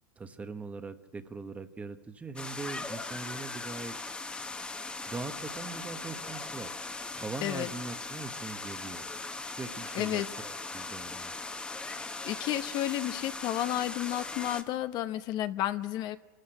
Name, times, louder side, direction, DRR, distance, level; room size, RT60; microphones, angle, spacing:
voice 1, 0.2-4.0 5.1-6.7 7.1-9.0 9.5-11.3, right 3 dB, 15° right, 9 dB, 1.1 m, -41 dB
sound 1, 2.4-14.6, left 3 dB, 10° left, 1.2 m, -39 dB
voice 2, 9.9-10.3 11.9-16.2, left 13 dB, 45° left, 10 dB, 0.9 m, -32 dB
26.0 x 13.0 x 8.8 m, 1.2 s
supercardioid pair, 120°, 10 cm